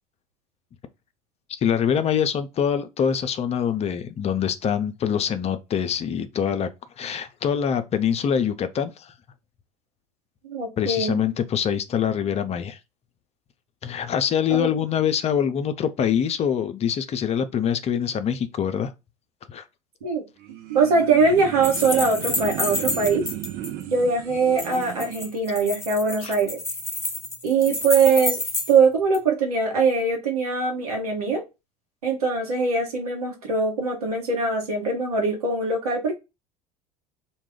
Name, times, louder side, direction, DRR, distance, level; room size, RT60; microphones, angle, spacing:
voice 1, 1.5-6.7 7.0-9.1 10.8-12.8 13.8-18.9 19.5-19.6 26.2-26.4, left 8 dB, 35° left, 0.5 m, -24 dB
voice 2, 10.4-11.2 14.6-14.7 20.0-20.2 20.7-23.2 23.9-26.6 27.4-28.4 28.7-31.4 32.0-36.1, right 4 dB, 80° right, 1.0 m, -22 dB
sound 1, 20.4-25.3, right 11 dB, 55° right, 0.6 m, -35 dB
sound 2, 21.6-23.7 24.6-28.8 29.1-29.2, left 2 dB, 15° left, 0.8 m, -29 dB
2.3 x 2.2 x 3.5 m
hypercardioid pair, 70°, 19 cm